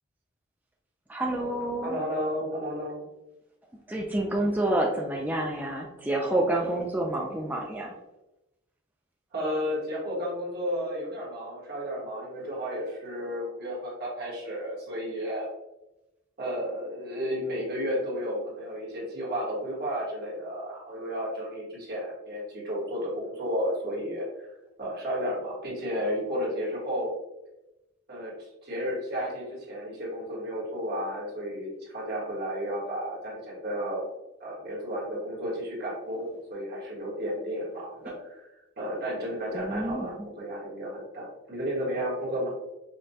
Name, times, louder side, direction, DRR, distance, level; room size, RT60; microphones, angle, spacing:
voice 1, 1.1-2.0 3.9-7.9 39.5-40.3, right 1 dB, 10° right, -1 dB, 0.3 m, -28 dB
voice 2, 1.8-3.0 9.3-15.5 16.4-24.5 24.8-27.1 28.1-34.1 34.4-38.5 38.8-42.5, equal, 50° right, -5 dB, 1.3 m, -32 dB
5.0 x 2.2 x 2.7 m, 0.96 s
head